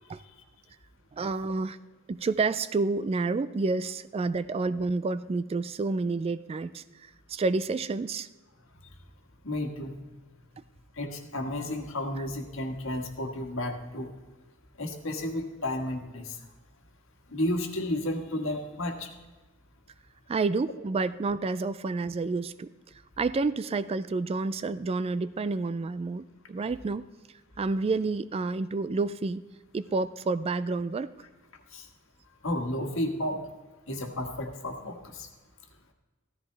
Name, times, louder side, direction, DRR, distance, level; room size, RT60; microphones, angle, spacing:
voice 1, 1.1-1.8 2.1-8.3 20.3-22.7 23.2-27.0 27.6-29.4 29.7-31.1, right 3 dB, 30° right, 15 dB, 0.3 m, -29 dB
voice 2, 9.4-10.0 11.0-14.1 14.8-16.4 17.3-19.1 31.7-31.9 32.4-33.4 33.9-35.3, left 1 dB, 65° left, 3 dB, 1.7 m, -32 dB
15.0 x 13.5 x 3.3 m, 1.2 s
head